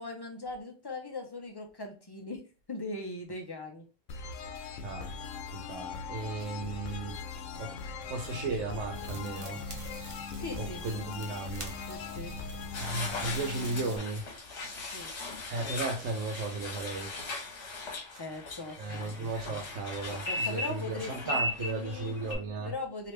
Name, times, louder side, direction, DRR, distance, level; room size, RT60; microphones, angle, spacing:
voice 1, 0.0-2.4 2.7-3.8 10.4-10.8 11.9-12.3 14.9-15.1 18.2-19.1 20.1-22.1 22.6-23.1, left 2 dB, 30° left, 0.4 m, -39 dB
sound 1, 4.1-14.7, left 5 dB, 85° left, 0.9 m, -41 dB
voice 2, 4.7-7.8 8.1-9.6 10.6-12.4 12.8-14.3 15.2-17.1 18.8-22.7, right 3 dB, 90° right, 1.0 m, -36 dB
sound 2, 8.9-14.0, left 1 dB, 35° right, 0.7 m, -44 dB
sound 3, 12.7-22.3, left 2 dB, 65° left, 1.2 m, -38 dB
3.2 x 2.8 x 3.1 m
omnidirectional pair, 1.3 m